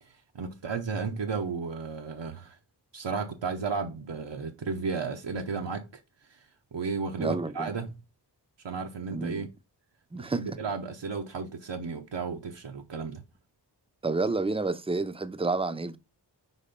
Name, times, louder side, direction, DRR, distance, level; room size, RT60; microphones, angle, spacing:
voice 1, 0.0-2.6 2.9-5.9 6.2-7.9 8.6-9.5 10.1-13.2, right 5 dB, 75° right, 0.8 m, -34 dB
voice 2, 7.2-7.7 9.1-9.3 10.1-10.4 14.0-16.0, right 3 dB, 15° right, 0.5 m, -29 dB
4.9 x 4.1 x 5.1 m
wide cardioid pair, 80°, 43 cm